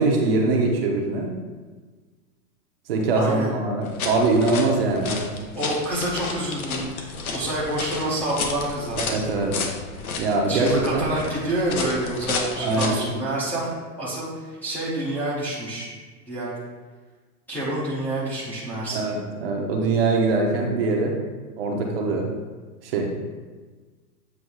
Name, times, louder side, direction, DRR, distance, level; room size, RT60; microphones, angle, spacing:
voice 1, 0.0-1.3 2.9-5.3 9.0-9.6 10.2-11.1 12.6-13.1 18.9-21.2 21.6-22.3 22.8-23.2, right 3 dB, 40° right, 1 dB, 0.8 m, -23 dB
voice 2, 3.1-3.5 5.5-9.0 10.5-13.7 14.0-15.9 16.3-16.6 17.5-19.1, right 1 dB, 5° left, -9 dB, 0.7 m, -28 dB
sound 1, 3.8-13.1, left 4 dB, 65° left, 1.2 m, -32 dB
8.0 x 2.7 x 5.5 m, 1.4 s
hypercardioid pair, 160°, 47 cm